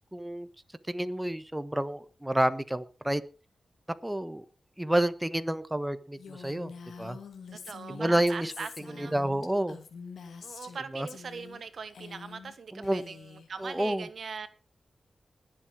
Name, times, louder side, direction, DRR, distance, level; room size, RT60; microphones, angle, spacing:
voice 1, 0.1-0.5 0.9-3.2 4.0-4.4 4.8-6.7 7.0-7.2 7.9-8.5 9.0-9.8 10.9-11.1 12.7-13.0 13.6-14.1, right 1 dB, 10° right, 1.3 m, -29 dB
Female speech woman speaking, 6.2-10.8 11.1-11.6 11.9-12.5 12.8-13.5, left 5 dB, 85° left, 2.7 m, -46 dB
voice 2, 7.5-9.2 10.4-14.5, right 5 dB, 70° right, 1.4 m, -41 dB
20.5 x 7.7 x 4.9 m
cardioid pair, 50°, 0 cm